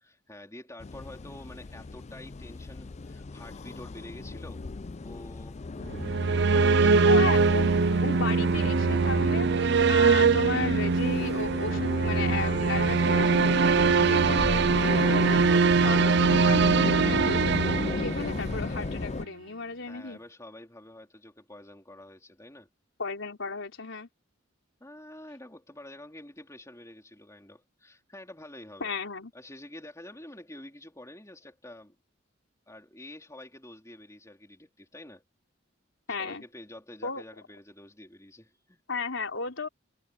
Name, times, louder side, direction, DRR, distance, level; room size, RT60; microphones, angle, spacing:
voice 1, 0.0-4.6 5.0-5.6 5.9-7.3 19.9-22.7 24.8-28.9 29.3-32.0 32.7-35.2 36.2-38.8, left 1 dB, 15° left, 3.6 m, -48 dB
sound 1, 0.8-19.3, left 3 dB, 35° left, 0.4 m, -35 dB
sound 2, 5.9-18.7, right 4 dB, 60° right, 0.5 m, -23 dB
voice 2, 7.1-20.2 23.0-24.1 28.8-29.3 36.1-36.4 37.0-37.2 38.9-39.7, left 3 dB, 75° left, 4.1 m, -35 dB
head